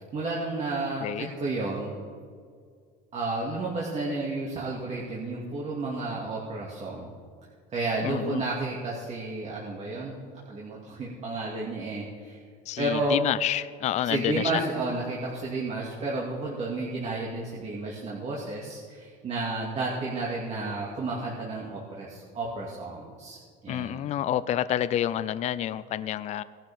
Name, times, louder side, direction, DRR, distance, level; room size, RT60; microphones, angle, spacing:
voice 1, 0.1-2.0 3.1-7.1 7.7-12.4 12.8-13.2 14.0-23.4 23.6-24.0, right 2 dB, 35° right, -4 dB, 2.2 m, -32 dB
voice 2, 8.0-8.4 12.7-14.6 23.7-26.4, left 11 dB, 35° left, 15 dB, 0.4 m, -28 dB
18.5 x 11.5 x 3.6 m, 2.1 s
cardioid pair, 130°, 19 cm